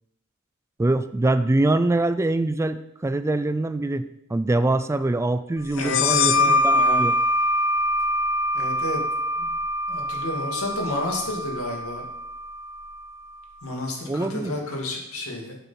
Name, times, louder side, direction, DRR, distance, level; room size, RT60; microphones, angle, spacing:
voice 1, 0.8-7.1 14.1-14.6, right 2 dB, 15° right, 12 dB, 0.3 m, -24 dB
voice 2, 5.7-7.1 8.5-9.0 9.4-9.5 9.9-12.0 13.6-15.6, left 1 dB, 90° left, 0 dB, 2.4 m, -30 dB
sound 1, 5.8-13.1, left 1 dB, 65° left, 0.5 m, -24 dB
8.0 x 7.0 x 5.7 m, 0.84 s
head